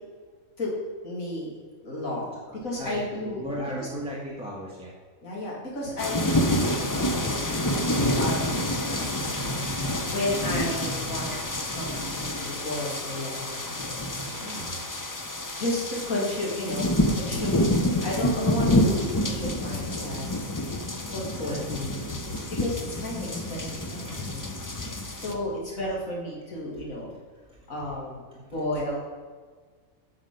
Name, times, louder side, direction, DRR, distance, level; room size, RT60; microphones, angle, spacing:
voice 1, 1.0-1.5 1.8-2.3 2.6-3.4 3.8-3.9 5.2-7.8 8.1-8.8 9.1-9.5 10.1-11.3 11.6-14.6 15.6-20.4 21.1-22.1 22.6-24.8 25.2-27.1 27.7-29.0, left 1 dB, 80° left, -4 dB, 3.0 m, -33 dB
voice 2, 2.3-4.9 14.5-14.8 21.3-22.1 24.1-24.2 24.8-24.9 25.7-25.8, equal, 5° right, -6 dB, 1.4 m, -36 dB
sound 1, 6.0-25.3, left 1 dB, 25° left, 0.4 m, -28 dB
9.4 x 6.6 x 5.3 m, 1.5 s
omnidirectional pair, 1.4 m